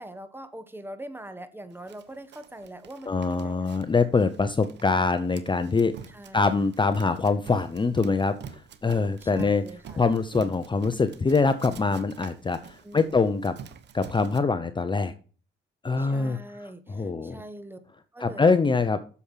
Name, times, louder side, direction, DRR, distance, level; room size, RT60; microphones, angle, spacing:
voice 1, 0.0-3.7 6.1-6.5 9.2-10.0 12.8-13.3 16.0-17.8 18.1-18.5, right 1 dB, 10° right, 1.4 m, -43 dB
Run, 1.9-14.4, right 7 dB, 60° right, 1.0 m, -46 dB
voice 2, 3.1-5.9 6.3-9.6 10.0-13.5 13.9-15.1 15.8-16.4 16.9-17.4 18.2-19.0, left 4 dB, 25° left, 0.7 m, -24 dB
8.3 x 7.1 x 5.7 m
cardioid pair, 90°, 20 cm